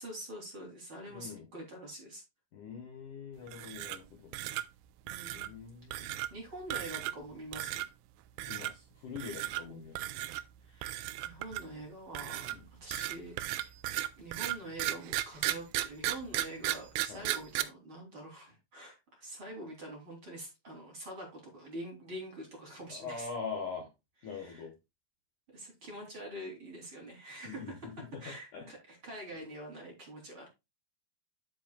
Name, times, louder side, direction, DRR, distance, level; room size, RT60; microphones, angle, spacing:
voice 1, 0.0-2.2 5.0-5.5 5.9-7.8 9.7-9.8 10.6-13.7 14.2-23.3 24.3-24.7 25.5-27.9 28.2-30.5, right 1 dB, 30° right, -1 dB, 3.2 m, -45 dB
voice 2, 1.1-1.5 2.5-4.3 5.3-6.2 8.5-10.0 12.5-12.6 17.1-17.3 22.9-23.9 24.2-24.7 27.5-28.2 28.5-28.7, left 5 dB, 70° left, 3 dB, 1.9 m, -43 dB
sound 1, 3.5-4.1 4.3-4.6 5.1-5.5 5.9-6.3 6.7-7.2 7.5-7.9 8.4-8.7 9.2-9.6 10.0-10.4 10.8-11.7 12.2-17.6, right 15 dB, 85° right, 3.0 m, -35 dB
9.8 x 8.1 x 2.3 m, 0.24 s
omnidirectional pair, 5.6 m